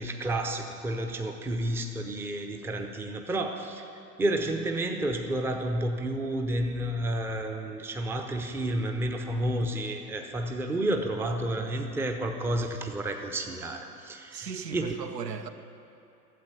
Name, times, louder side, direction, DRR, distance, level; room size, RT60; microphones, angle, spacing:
voice 1, 0.0-3.8 4.2-14.9, right 1 dB, 5° right, 4 dB, 0.6 m, -30 dB
voice 2, 14.3-15.5, right 6 dB, 75° right, 8 dB, 0.9 m, -37 dB
12.5 x 7.9 x 8.5 m, 2.9 s
figure-of-eight pair, 95°, 49 cm